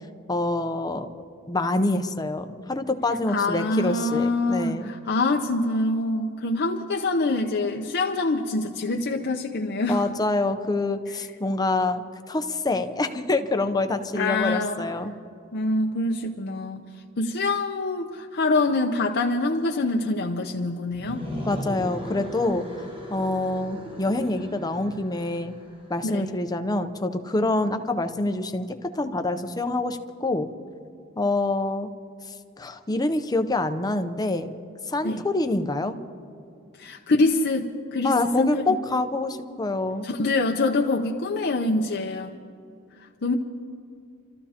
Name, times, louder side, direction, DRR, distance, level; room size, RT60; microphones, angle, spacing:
voice 1, 0.3-1.1 1.5-4.9 9.9-12.0 12.3-15.1 21.5-22.6 23.1-25.6 25.9-30.5 31.2-31.9 32.6-34.5 34.9-36.0 38.0-40.1, left 2 dB, 20° left, 8 dB, 0.7 m, -26 dB
voice 2, 3.3-10.0 14.1-14.9 15.5-16.8 17.2-21.3 26.0-26.3 35.0-35.2 36.8-38.6 40.0-42.3 43.2-43.4, left 2 dB, 55° left, 2 dB, 0.7 m, -25 dB
sound 1, 20.9-25.9, equal, 25° right, 1.0 m, -37 dB
29.5 x 14.0 x 2.9 m, 2.4 s
head